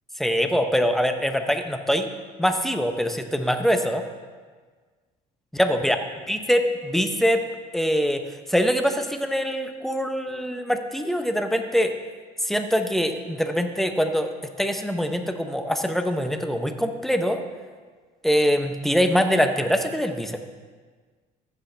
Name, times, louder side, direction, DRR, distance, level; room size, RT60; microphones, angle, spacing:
voice 1, 0.2-2.1 2.4-4.0 5.5-6.0 6.3-7.4 7.7-8.2 8.5-11.9 12.4-14.3 14.6-17.4 18.2-20.4, equal, ahead, 6 dB, 0.8 m, -23 dB
14.0 x 8.2 x 3.4 m, 1.5 s
cardioid pair, 110°, 17 cm